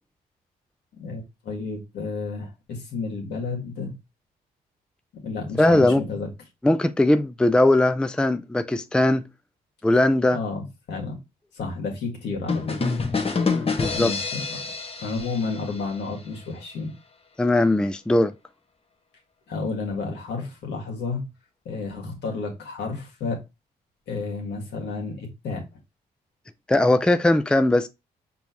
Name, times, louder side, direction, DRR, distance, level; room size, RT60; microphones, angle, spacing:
voice 1, 1.0-3.9 5.2-6.3 10.3-11.2 11.5-12.8 13.9-14.7 15.0-16.9 19.5-21.2 21.6-23.4 24.1-25.6, left 4 dB, 80° left, 1.7 m, -31 dB
voice 2, 5.6-6.0 6.6-9.3 9.8-10.4 13.5-14.1 17.4-18.3 26.7-27.9, left 1 dB, 5° left, 0.4 m, -20 dB
sound 1, 12.5-16.2, left 4 dB, 35° left, 1.0 m, -27 dB
5.3 x 3.0 x 2.9 m
supercardioid pair, 60°, 17 cm